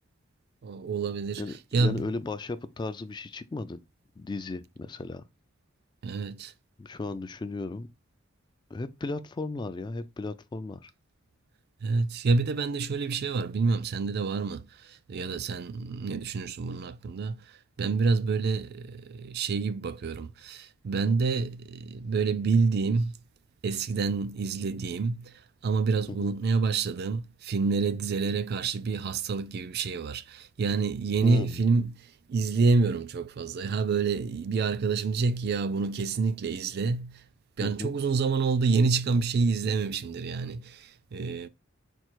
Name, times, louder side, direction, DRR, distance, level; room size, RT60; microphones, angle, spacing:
voice 1, 0.6-2.1 6.0-6.5 11.8-23.2 23.6-37.2 37.6-41.5, right 4 dB, 50° right, 0.4 m, -28 dB
voice 2, 1.4-3.8 4.2-5.2 6.8-7.9 8.7-10.9 26.1-26.3 31.2-31.6 37.6-37.9, left 3 dB, 20° left, 0.3 m, -35 dB
4.5 x 2.4 x 4.4 m
head